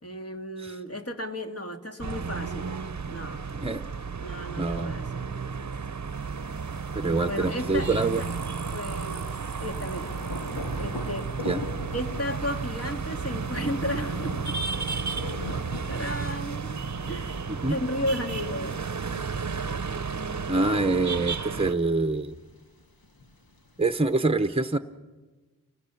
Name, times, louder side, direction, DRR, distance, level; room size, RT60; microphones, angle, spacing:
voice 1, 0.0-2.8 3.1-3.5 4.2-6.0 7.3-8.3 8.7-10.2 10.8-11.3 11.9-14.6 15.5-16.8 17.1-18.8, left 1 dB, 40° left, 3 dB, 2.3 m, -34 dB
sound 1, 2.0-21.7, right 5 dB, 50° right, 0.8 m, -33 dB
voice 2, 4.6-4.9 6.9-8.2 11.4-11.7 17.5-17.8 20.5-22.3 23.8-24.8, right 3 dB, 15° right, 10 dB, 0.9 m, -25 dB
Thunder, 6.1-24.1, left 2 dB, 80° left, 1.8 m, -43 dB
29.5 x 20.0 x 7.1 m, 1.3 s
wide cardioid pair, 45°, 36 cm